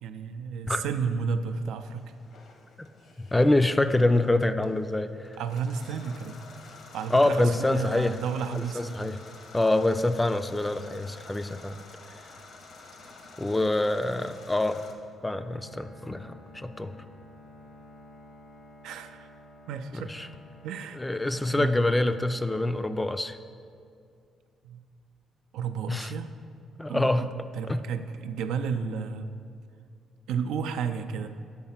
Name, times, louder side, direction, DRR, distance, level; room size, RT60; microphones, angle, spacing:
voice 1, 0.0-2.1 5.4-6.4 6.9-8.8 18.8-19.3 19.7-20.3 20.6-21.2 21.6-21.7 24.6-24.8 25.5-26.3 26.9-27.3 27.5-29.4 30.3-31.3, right 6 dB, 90° right, 8 dB, 0.4 m, -32 dB
sound 1, 1.9-14.9, left 3 dB, 70° left, 0.9 m, -49 dB
voice 2, 3.3-5.4 7.1-8.1 8.5-9.2 9.5-11.8 13.4-14.8 15.2-16.9 20.1-20.3 21.0-23.4 25.9-26.1 26.8-27.2 27.7-27.8, left 2 dB, 15° left, 10 dB, 0.3 m, -25 dB
Bowed string instrument, 15.2-23.4, left 1 dB, 85° left, 2.1 m, -52 dB
8.7 x 4.2 x 5.7 m, 2.3 s
cardioid pair, 90°, 0 cm